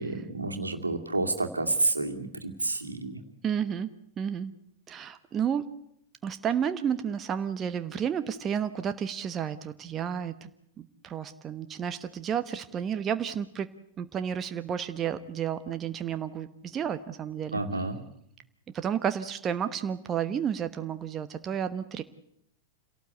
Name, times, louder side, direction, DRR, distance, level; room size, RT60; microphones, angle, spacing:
voice 1, 0.0-3.2 17.5-18.0, right 2 dB, 80° right, 4 dB, 2.4 m, -29 dB
voice 2, 3.4-3.9 4.2-4.5 4.9-5.6 6.2-10.3 10.8-13.7 14.0-17.6 18.7-22.0, right 8 dB, 25° right, 10 dB, 1.1 m, -31 dB
27.5 x 17.5 x 8.3 m, 0.75 s
figure-of-eight pair, 95°, 0 cm